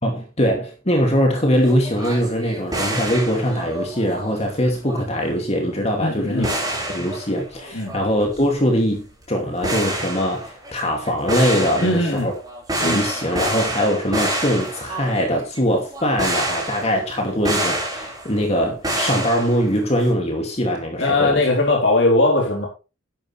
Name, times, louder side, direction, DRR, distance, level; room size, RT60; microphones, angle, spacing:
voice 1, 0.0-6.5 6.9-12.3 12.8-21.4, equal, 30° left, 2.6 m, -22 dB
sound 1, 1.5-4.3 4.6-5.3 6.3-8.7 9.1-9.2 9.6-18.4 18.8-20.0, right 1 dB, 20° right, 6.5 m, -28 dB
voice 2, 6.0-6.5 7.7-7.9 11.8-12.3 12.8-13.0 21.0-22.7, left 2 dB, 60° left, 4.1 m, -19 dB
12.0 x 11.0 x 3.4 m
head